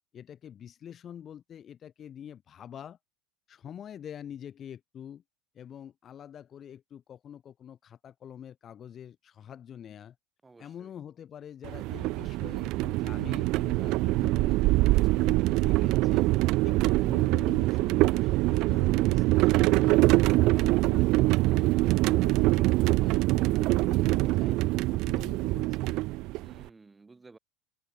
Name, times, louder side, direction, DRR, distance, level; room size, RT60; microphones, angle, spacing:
voice 1, 0.1-3.0 3.5-5.2 5.5-10.2 10.6-16.3 16.6-20.1 20.3-24.6 24.9-26.0, left 9 dB, 25° left, 2.3 m, -45 dB
voice 2, 10.4-10.9 26.4-27.4, right 3 dB, 10° right, 7.8 m, -54 dB
sound 1, 11.6-26.6, right 20 dB, 50° right, 0.8 m, -24 dB
open air
supercardioid pair, 155°, 0 cm